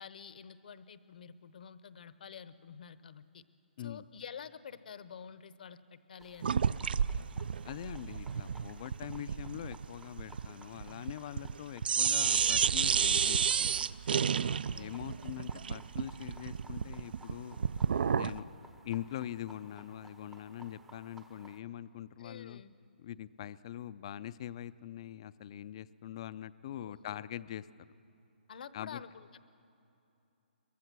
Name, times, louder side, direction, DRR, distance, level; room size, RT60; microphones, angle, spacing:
voice 1, 0.0-3.4 3.8-6.9 14.4-15.0 22.2-22.7 26.8-27.4 28.5-29.4, left 7 dB, 55° left, 14 dB, 0.9 m, -49 dB
sound 1, 6.2-21.6, right 2 dB, 5° right, 0.7 m, -58 dB
sound 2, 6.4-11.6 11.8-18.4, right 7 dB, 60° right, 0.4 m, -31 dB
voice 2, 7.6-13.7 14.7-17.6 18.1-18.5 18.8-22.6 23.0-27.6 28.7-29.0, left 11 dB, 30° left, 16 dB, 0.4 m, -43 dB
23.0 x 22.5 x 6.1 m, 2.8 s
hypercardioid pair, 165°, 6 cm